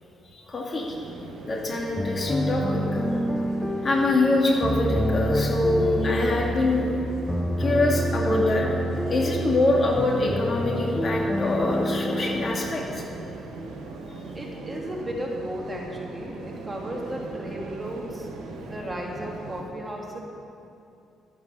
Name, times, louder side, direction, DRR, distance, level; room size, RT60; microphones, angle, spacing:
voice 1, 0.3-1.0 1.4-3.0 3.8-6.9 7.6-8.7 9.1-13.0, left 2 dB, 40° left, -1 dB, 2.2 m, -24 dB
sound 1, 0.9-19.6, right 3 dB, 90° right, 1.6 m, -39 dB
sound 2, 2.0-13.7, equal, 15° left, 0.7 m, -28 dB
voice 2, 14.3-18.3 18.7-20.2, equal, 15° right, -2 dB, 2.5 m, -35 dB
11.5 x 9.5 x 6.9 m, 2.7 s
cardioid pair, 90°, 0 cm